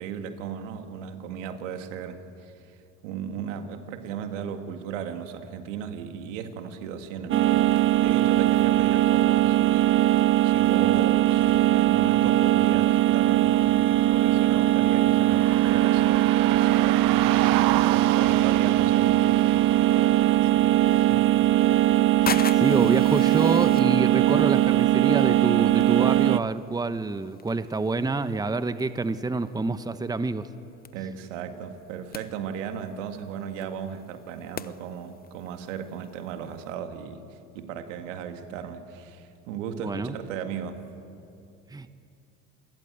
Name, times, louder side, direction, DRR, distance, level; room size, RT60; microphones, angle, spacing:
voice 1, 0.0-2.8 3.0-17.6 17.9-21.4 30.9-37.2 37.5-40.8, right 7 dB, 80° right, 6 dB, 2.2 m, -36 dB
sound 1, 7.3-26.4, right 14 dB, 35° right, 0.5 m, -20 dB
sound 2, 15.3-20.5, right 15 dB, 65° right, 1.2 m, -31 dB
sound 3, 20.9-36.7, left 7 dB, 25° left, 0.9 m, -42 dB
voice 2, 22.2-30.5 39.8-40.1 41.7-41.9, right 3 dB, 10° right, 12 dB, 1.0 m, -27 dB
27.0 x 21.0 x 8.2 m, 2.7 s
hypercardioid pair, 85°, 37 cm